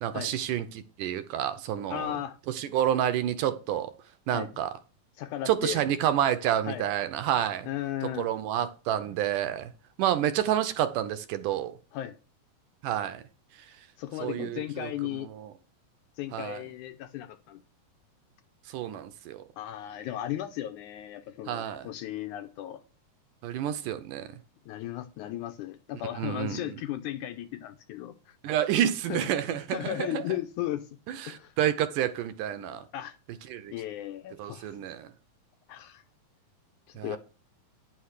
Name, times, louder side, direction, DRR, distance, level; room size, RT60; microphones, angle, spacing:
voice 1, 0.0-2.2 2.5-3.9 4.3-4.7 5.5-7.7 8.2-9.7 10.0-11.8 12.8-13.2 14.2-14.9 16.3-16.6 18.7-19.4 21.5-21.9 23.4-24.3 26.2-26.6 28.4-30.2 31.1-32.8 33.5-33.7 34.4-35.1 37.0-37.2, right 11 dB, 80° right, 2.1 m, -29 dB
voice 2, 1.9-2.4 4.3-4.5 5.2-5.9 6.6-6.9 7.6-8.3 11.9-12.2 14.0-15.3 16.2-17.6 19.6-22.8 24.7-28.4 29.1-30.9 31.3-31.5 32.6-33.2 33.7-34.8 35.7-36.0 36.9-37.2, left 13 dB, 75° left, 1.9 m, -36 dB
10.0 x 5.7 x 6.5 m
omnidirectional pair, 4.0 m